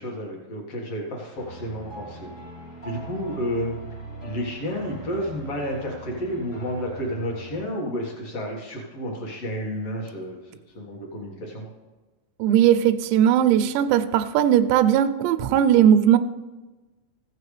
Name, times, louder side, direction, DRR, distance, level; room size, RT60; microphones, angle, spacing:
voice 1, 0.0-2.3 2.8-3.7 4.2-11.6, equal, 80° left, -2 dB, 1.3 m, -31 dB
sound 1, 1.3-7.7, right 1 dB, 40° left, 1.1 m, -41 dB
voice 2, 12.4-16.2, right 10 dB, 90° right, 8 dB, 2.5 m, -18 dB
15.5 x 9.1 x 3.3 m, 1.2 s
omnidirectional pair, 5.7 m